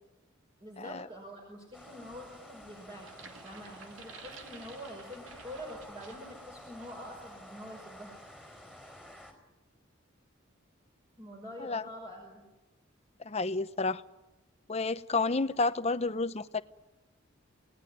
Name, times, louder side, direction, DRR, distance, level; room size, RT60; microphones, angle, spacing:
voice 1, 0.6-8.2 11.2-12.4, equal, 25° right, -1 dB, 5.8 m, -46 dB
sound 1, 1.7-9.3, left 1 dB, 5° right, 4.7 m, -51 dB
sound 2, 2.9-6.4 6.8-7.0, right 5 dB, 75° right, 2.5 m, -52 dB
voice 2, 13.2-14.0 14.7-16.6, left 3 dB, 30° left, 13 dB, 0.8 m, -30 dB
28.5 x 19.0 x 9.6 m, 1.1 s
head